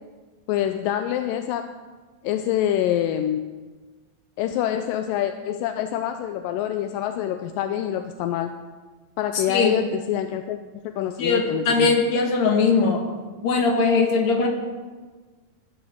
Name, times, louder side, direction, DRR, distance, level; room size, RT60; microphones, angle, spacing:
voice 1, 0.5-1.7 2.2-3.5 4.4-8.6 9.2-10.6 10.8-12.0, left 11 dB, 80° left, 8 dB, 2.1 m, -26 dB
voice 2, 9.3-9.7 11.2-13.0 13.4-14.5, left 4 dB, 55° left, 2 dB, 2.8 m, -20 dB
18.5 x 11.5 x 4.7 m, 1.4 s
omnidirectional pair, 4.2 m